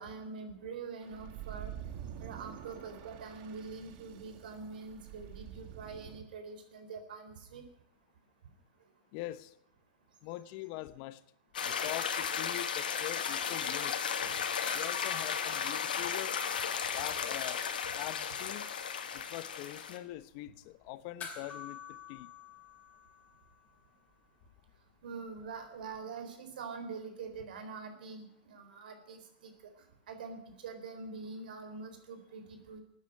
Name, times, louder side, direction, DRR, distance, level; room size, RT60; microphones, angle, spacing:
voice 1, 0.0-1.7 2.2-7.6 25.0-29.5 30.1-32.8, right 4 dB, 80° right, 7 dB, 4.1 m, -44 dB
sound 1, 1.0-6.2, right 10 dB, 55° right, 1.8 m, -47 dB
voice 2, 9.1-9.5 10.2-11.2 11.6-14.0 14.7-16.3 16.9-17.6 17.9-18.7 19.1-22.3, left 16 dB, 55° left, 15 dB, 1.0 m, -43 dB
sound 2, 11.5-20.0, left 7 dB, 90° left, 2.0 m, -35 dB
sound 3, 14.7-17.3 17.6-17.7 21.2-23.8 25.9-26.0, left 6 dB, 30° left, 4.9 m, -48 dB
14.5 x 9.6 x 9.3 m, 0.81 s
hypercardioid pair, 120°, 5 cm